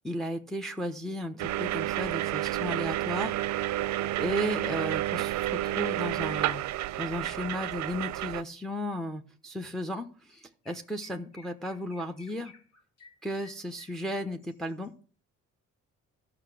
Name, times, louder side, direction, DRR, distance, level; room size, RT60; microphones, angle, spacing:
voice 1, 0.0-3.7 4.2-12.5 13.2-14.9, equal, ahead, 5 dB, 0.9 m, -35 dB
sound 1, 1.4-8.4, right 14 dB, 70° right, 0.5 m, -30 dB
Chirp tweet, 9.9-10.0 10.3-14.9, left 4 dB, 55° left, 2.4 m, -56 dB
12.0 x 6.0 x 7.6 m, 0.42 s
cardioid pair, 90°, 30 cm